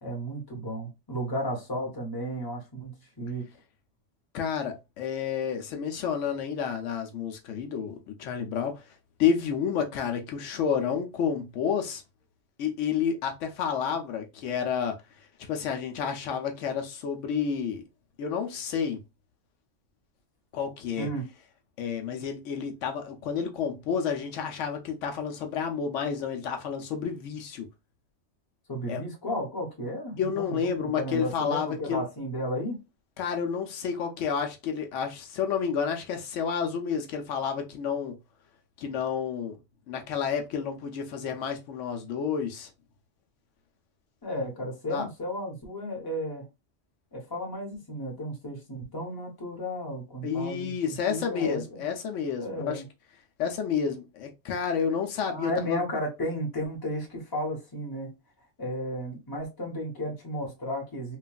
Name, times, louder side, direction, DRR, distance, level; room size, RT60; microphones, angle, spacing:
voice 1, 0.0-3.5 21.0-21.3 28.7-32.8 44.2-46.5 47.1-51.8 52.4-52.8 55.3-58.1 58.6-61.2, equal, 20° left, 0.8 m, -34 dB
voice 2, 4.3-8.8 9.2-12.0 12.6-15.0 15.5-17.8 18.2-19.0 20.5-21.1 21.8-27.7 28.9-29.0 30.2-32.0 33.2-38.2 38.8-39.6 39.9-42.7 44.9-45.1 50.2-52.8 53.4-55.8, left 7 dB, 80° left, 0.9 m, -30 dB
3.0 x 2.4 x 2.2 m
omnidirectional pair, 1.2 m